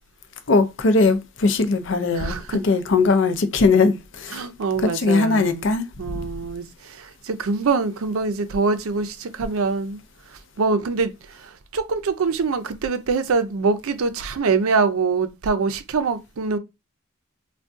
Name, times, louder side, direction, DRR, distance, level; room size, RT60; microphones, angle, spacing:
voice 1, 0.5-2.4 2.6-4.4 4.8-5.8, left 3 dB, 60° left, 0.5 m, -19 dB
voice 2, 4.3-5.7 6.0-10.0 10.6-11.1 11.7-16.6, right 4 dB, 85° right, 0.5 m, -24 dB
3.6 x 2.2 x 2.5 m
head